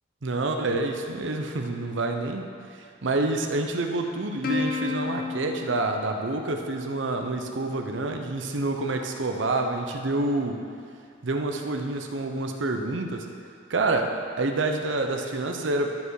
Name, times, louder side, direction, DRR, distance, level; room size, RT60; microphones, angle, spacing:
voice 1, 0.2-10.6 11.2-13.3 13.7-16.0, right 2 dB, 80° right, 4 dB, 0.8 m, -28 dB
Plucked string instrument, 4.4-7.2, left 4 dB, 50° left, 1.1 m, -32 dB
12.0 x 5.2 x 4.8 m, 2.3 s
head